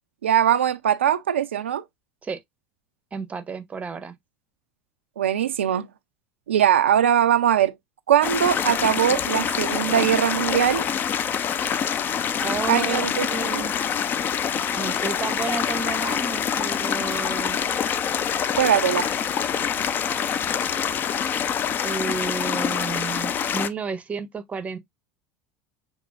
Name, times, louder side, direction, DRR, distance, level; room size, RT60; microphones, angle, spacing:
voice 1, 0.2-1.8 5.2-5.9 6.5-7.7 8.1-10.8 12.7-13.6 18.6-19.1, right 10 dB, 70° right, 0.4 m, -21 dB
voice 2, 3.1-4.2 12.4-13.7 14.7-17.6 21.8-24.8, right 4 dB, 20° right, 0.7 m, -31 dB
sound 1, 8.2-23.7, left 8 dB, 30° left, 0.5 m, -25 dB
6.1 x 3.5 x 2.4 m
figure-of-eight pair, 75°, 7 cm